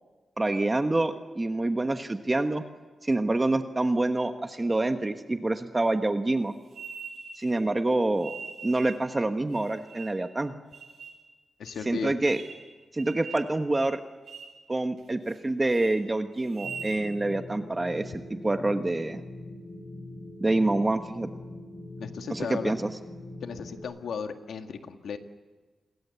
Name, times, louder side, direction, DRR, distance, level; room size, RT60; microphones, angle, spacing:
voice 1, 0.4-2.6 3.0-6.5 7.4-8.3 8.6-10.5 11.9-12.4 12.9-14.0 14.7-19.2 20.4-21.3 22.3-22.9, right 2 dB, 20° right, 7 dB, 1.2 m, -27 dB
sound 1, 6.7-7.6 8.2-9.0 9.5-10.3 10.7-11.2 11.7-11.8 12.2-12.7 13.0-13.5 13.7-14.0 14.3-14.6 15.0-15.4 15.7-15.9 16.4-17.0, right 6 dB, 80° right, 7.4 m, -42 dB
voice 2, 11.6-12.1 22.0-22.8 23.4-25.2, left 6 dB, 85° left, 6 dB, 1.8 m, -35 dB
sound 2, 16.6-23.8, left 2 dB, 30° left, 7.9 m, -42 dB
29.0 x 21.5 x 7.0 m, 1.3 s
cardioid pair, 90°, 0 cm